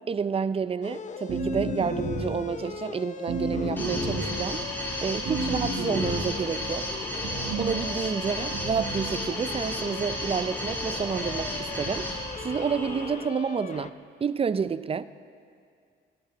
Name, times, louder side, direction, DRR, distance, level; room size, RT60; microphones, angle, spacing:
voice 1, 0.0-4.7 5.0-6.9 7.6-12.1 12.4-13.9 14.2-15.1, right 6 dB, 30° right, 15 dB, 0.4 m, -29 dB
sound 1, 0.8-13.9, left 6 dB, 40° left, 0.6 m, -40 dB
sound 2, 1.3-2.4 3.3-4.4 5.3-6.4 7.2-7.8 8.5-9.1, right 2 dB, 75° right, 4.5 m, -31 dB
sound 3, 3.8-13.1, equal, 10° left, 3.1 m, -33 dB
21.0 x 12.0 x 4.0 m, 2.3 s
cardioid pair, 90°, 20 cm